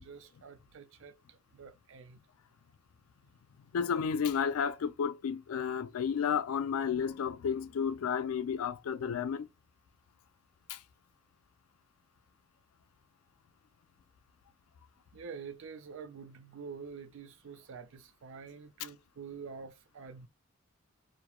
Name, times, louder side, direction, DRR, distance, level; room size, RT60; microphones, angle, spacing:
voice 1, 0.0-2.2 15.1-20.3, right 5 dB, 65° right, 0.4 m, -47 dB
voice 2, 3.7-9.5 10.7-10.8, left 7 dB, 90° left, 0.3 m, -32 dB
2.9 x 2.1 x 2.2 m
head